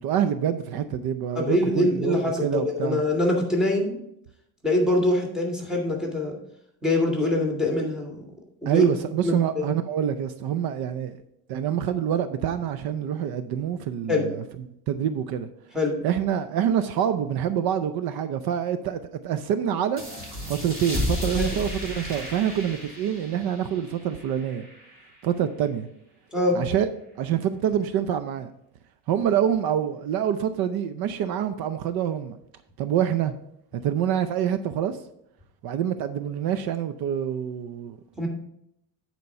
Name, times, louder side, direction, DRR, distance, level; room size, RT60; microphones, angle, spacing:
voice 1, 0.0-3.0 8.7-11.2 11.5-14.4 14.9-15.5 16.0-20.0 20.5-24.7 25.2-25.9 26.5-26.9 27.2-28.5 29.1-32.4 32.8-33.3 33.8-35.0 35.6-38.0, right 9 dB, 60° right, 0.7 m, -26 dB
voice 2, 1.4-4.0 4.6-6.4 6.8-8.2 8.6-8.9 9.2-9.7 14.1-14.3 15.7-16.0 26.3-26.6 38.2-38.3, left 1 dB, ahead, 2.1 m, -24 dB
sound 1, 20.0-25.2, left 1 dB, 25° right, 3.5 m, -33 dB
9.5 x 4.6 x 5.5 m
cardioid pair, 130°, 41 cm